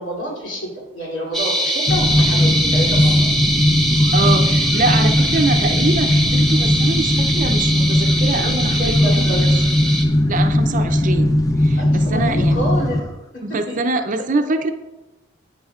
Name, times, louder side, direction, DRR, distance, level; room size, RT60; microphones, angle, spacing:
voice 1, 0.0-3.3 8.8-9.5 11.8-13.0 13.3-13.8, equal, 65° left, -3 dB, 3.0 m, -28 dB
sound 1, 1.3-10.0, right 1 dB, ahead, 0.9 m, -22 dB
sound 2, 1.9-13.0, left 1 dB, 20° left, 0.4 m, -18 dB
voice 2, 4.1-9.6 10.3-12.6 13.4-14.7, right 3 dB, 40° right, 7 dB, 0.5 m, -24 dB
10.5 x 9.1 x 2.4 m, 1.1 s
head